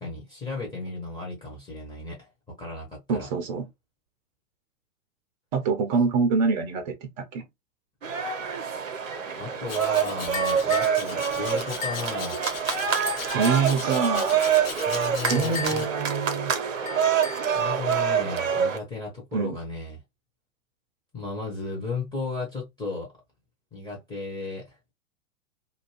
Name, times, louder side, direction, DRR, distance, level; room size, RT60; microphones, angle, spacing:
voice 1, 0.0-2.3 2.6-3.3 9.4-12.5 14.8-15.9 17.5-20.0 21.1-23.1 23.7-24.8, left 3 dB, 10° left, 0.8 m, -35 dB
voice 2, 3.1-3.7 5.5-7.5 13.3-14.4 15.3-16.5 19.3-19.6, right 5 dB, 35° right, 0.5 m, -25 dB
sound 1, 8.0-18.8, right 7 dB, 70° right, 0.7 m, -26 dB
Domestic sounds home sounds, 9.7-15.9, left 6 dB, 45° left, 1.1 m, -38 dB
sound 2, 10.3-11.0 11.8-12.1 13.1-13.7 15.2-16.0 16.9-17.6, left 5 dB, 70° left, 1.0 m, -35 dB
2.6 x 2.2 x 3.0 m
figure-of-eight pair, 105°, 40 cm